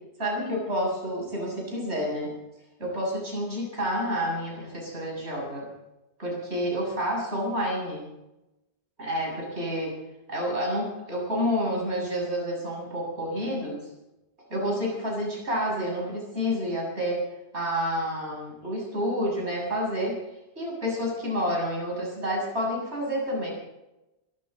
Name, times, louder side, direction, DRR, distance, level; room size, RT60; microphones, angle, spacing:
voice 1, 0.2-2.3 2.8-5.7 6.2-8.0 9.0-10.0 10.3-13.8 14.5-17.2 17.5-20.2 20.6-23.5, equal, 85° right, -2 dB, 7.6 m, -29 dB
24.5 x 14.0 x 4.1 m, 0.96 s
omnidirectional pair, 1.1 m